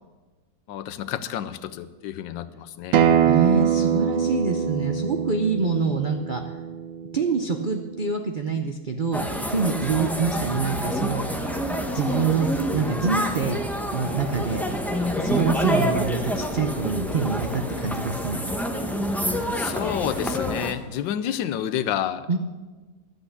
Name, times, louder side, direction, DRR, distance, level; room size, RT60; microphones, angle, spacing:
voice 1, 0.7-3.0 19.5-22.4, left 10 dB, 80° left, 13 dB, 1.4 m, -29 dB
Acoustic guitar, 2.9-8.1, right 8 dB, 85° right, 1.5 m, -24 dB
voice 2, 3.2-6.4 7.1-9.2 9.5-11.2 11.9-13.6 13.9-14.6 15.2-18.4 22.3-22.4, right 4 dB, 55° right, 4 dB, 0.5 m, -25 dB
sound 1, 9.1-20.7, equal, ahead, 0.7 m, -27 dB
12.0 x 8.2 x 8.2 m, 1.3 s
omnidirectional pair, 2.0 m